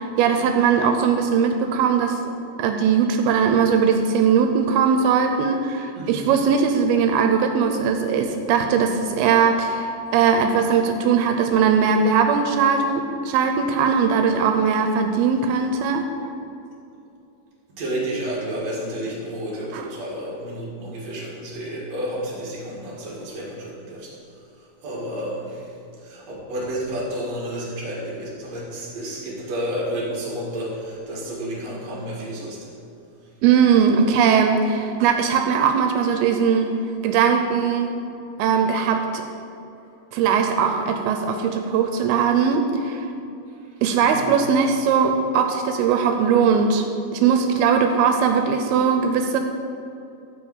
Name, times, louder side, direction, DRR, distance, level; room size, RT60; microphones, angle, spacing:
voice 1, 0.0-2.2 2.6-16.0 19.7-19.9 33.4-36.7 37.0-37.9 38.4-39.2 40.1-43.1 43.8-46.8 47.1-49.4, right 6 dB, 85° right, 5 dB, 2.6 m, -20 dB
voice 2, 5.9-6.3 17.8-24.1 24.6-32.6 44.0-44.3, right 1 dB, 45° right, -6 dB, 3.1 m, -31 dB
12.0 x 5.0 x 7.9 m, 2.7 s
omnidirectional pair, 4.4 m